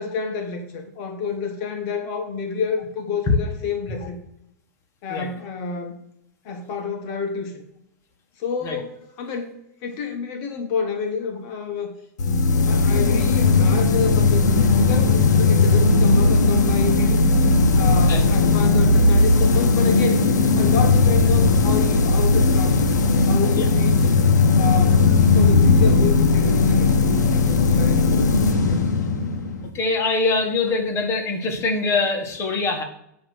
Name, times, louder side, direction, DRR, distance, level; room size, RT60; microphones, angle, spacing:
voice 1, 0.0-4.2 5.0-6.0 6.4-7.6 8.4-9.6 9.8-11.9 12.2-17.2 17.7-20.2 20.6-22.8 23.2-24.1 24.5-28.3 28.6-29.4, left 5 dB, 50° left, 4 dB, 1.2 m, -29 dB
sound 1, 12.2-29.7, left 3 dB, 90° left, 1.1 m, -17 dB
voice 2, 29.7-32.8, left 3 dB, 30° left, 2 dB, 1.7 m, -23 dB
8.7 x 3.1 x 6.3 m, 0.77 s
hypercardioid pair, 120°, 9 cm